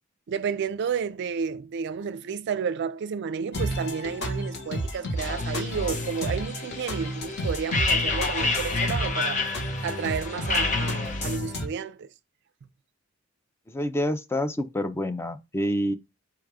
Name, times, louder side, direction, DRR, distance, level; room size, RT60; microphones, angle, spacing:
voice 1, 0.3-9.4 9.8-12.1, right 6 dB, 60° right, 0.3 m, -31 dB
sound 1, 3.5-11.7, equal, 55° left, 1.3 m, -31 dB
sound 2, 5.2-11.4, left 3 dB, 40° left, 0.7 m, -30 dB
voice 2, 13.7-15.9, equal, 10° left, 0.4 m, -27 dB
4.6 x 2.3 x 4.8 m
head